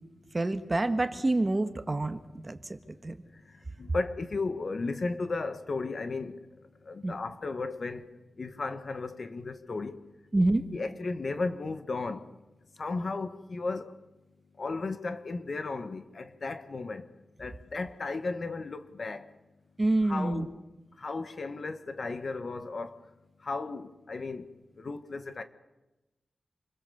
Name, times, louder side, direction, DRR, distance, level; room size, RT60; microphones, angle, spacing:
voice 1, 0.3-2.2 2.4-2.8 3.0-3.2 7.0-7.2 10.3-10.6 19.8-20.5, right 2 dB, 25° right, 1.4 m, -27 dB
voice 2, 3.8-6.4 6.9-8.1 8.4-10.0 10.7-12.3 12.8-13.9 14.6-17.0 17.4-19.3 20.0-20.5 21.0-23.0 23.4-24.4 24.8-25.4, left 3 dB, 50° left, 1.5 m, -34 dB
28.5 x 22.0 x 7.0 m
wide cardioid pair, 130°, 0 cm